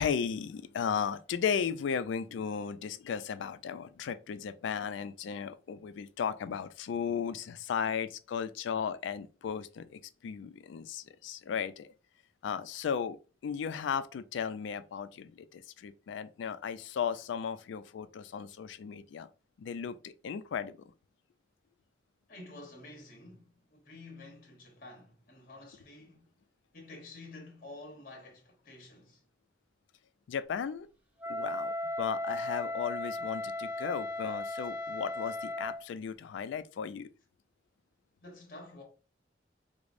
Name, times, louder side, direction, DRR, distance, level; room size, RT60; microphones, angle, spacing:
voice 1, 0.0-11.9 12.4-19.3 19.6-20.7 30.3-30.9 31.3-37.1, left 7 dB, 80° left, 0.3 m, -35 dB
voice 2, 22.3-26.3 26.7-29.2 38.2-38.8, left 2 dB, 50° left, 1.1 m, -50 dB
Wind instrument woodwind instrument, 31.2-35.8, left 1 dB, 10° right, 0.4 m, -36 dB
4.8 x 2.0 x 2.5 m
head